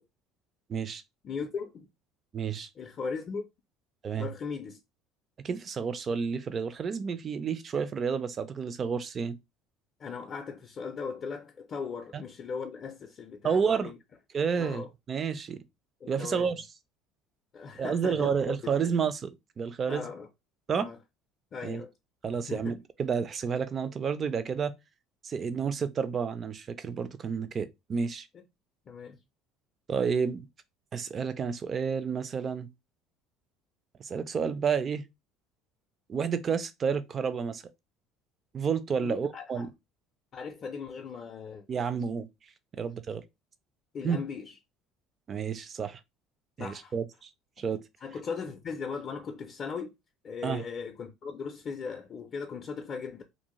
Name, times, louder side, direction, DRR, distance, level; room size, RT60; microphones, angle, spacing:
voice 1, 0.7-1.0 2.3-2.7 4.0-4.3 5.4-9.4 12.1-12.2 13.4-13.9 14.3-15.6 16.1-16.6 17.8-19.3 19.6-20.1 20.7-20.9 21.6-21.8 22.2-24.7 25.2-28.3 29.9-30.5 30.9-32.7 34.0-35.0 36.1-37.6 38.5-39.7 41.7-42.3 42.7-43.2 44.0-44.2 45.3-46.0 46.6-47.3 47.6-47.8 50.4-50.6, right 6 dB, 35° right, 0.4 m, -30 dB
voice 2, 1.2-1.9 2.8-3.4 4.2-4.8 10.0-14.0 14.6-14.9 16.0-16.5 17.5-18.9 19.9-20.3 20.7-21.0 21.5-21.9 22.5-22.7 28.9-29.2 39.0-39.7 40.3-41.8 42.8-42.9 43.9-44.5 46.6-46.9 48.0-49.9 50.2-53.2, left 5 dB, 40° left, 0.4 m, -38 dB
2.6 x 2.0 x 3.0 m
cardioid pair, 115°, 0 cm